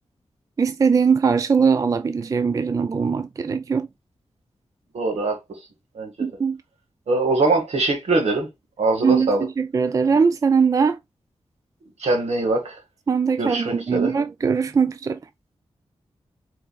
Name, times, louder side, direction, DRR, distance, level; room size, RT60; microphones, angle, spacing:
voice 1, 0.6-3.9 6.2-6.6 9.0-11.0 13.1-15.2, right 5 dB, 30° right, 0.3 m, -21 dB
voice 2, 4.9-5.4 6.0-6.1 7.1-8.5 8.8-9.4 12.0-12.8 13.4-14.1, right 2 dB, 85° right, 2.0 m, -22 dB
4.8 x 3.9 x 2.3 m
wide cardioid pair, 170°, 11 cm